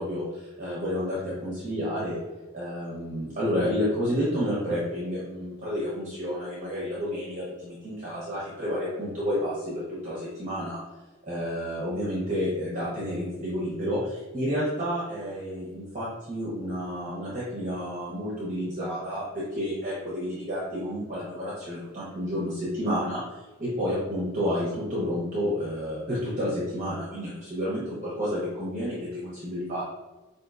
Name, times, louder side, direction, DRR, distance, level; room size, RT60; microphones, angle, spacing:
voice 1, 0.0-2.2 2.5-10.8 11.3-23.2 23.6-29.8, equal, 35° right, -8 dB, 0.9 m, -30 dB
5.1 x 2.7 x 2.5 m, 1.2 s
head